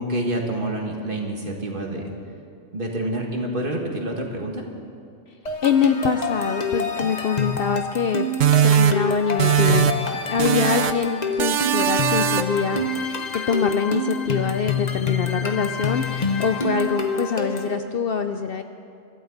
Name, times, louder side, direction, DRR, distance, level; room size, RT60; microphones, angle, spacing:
voice 1, 0.0-2.0 2.7-4.6, right 1 dB, 45° right, 1 dB, 1.9 m, -27 dB
sound 1, 5.5-17.8, left 3 dB, 35° left, 1.1 m, -27 dB
voice 2, 5.6-8.3 8.6-9.9 10.3-12.8 13.3-18.6, left 6 dB, 60° left, 8 dB, 0.7 m, -24 dB
sound 2, 8.4-10.1 10.4-11.1 11.4-12.7, right 9 dB, 75° right, 1.0 m, -20 dB
24.5 x 13.0 x 3.9 m, 2.5 s
omnidirectional pair, 1.3 m